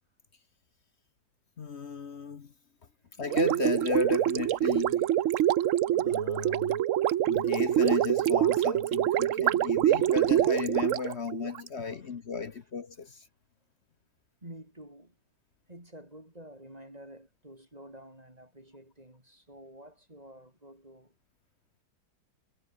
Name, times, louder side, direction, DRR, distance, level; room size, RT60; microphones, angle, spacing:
voice 1, 1.6-2.5 3.2-5.1 5.9-6.8 7.2-13.2, left 5 dB, 45° left, 1.0 m, -34 dB
Gurgling, 3.3-11.7, right 12 dB, 75° right, 0.7 m, -25 dB
voice 2, 11.8-12.2 12.5-12.7 14.4-15.2 15.7-21.2, right 1 dB, 20° right, 4.9 m, -50 dB
omnidirectional pair, 2.1 m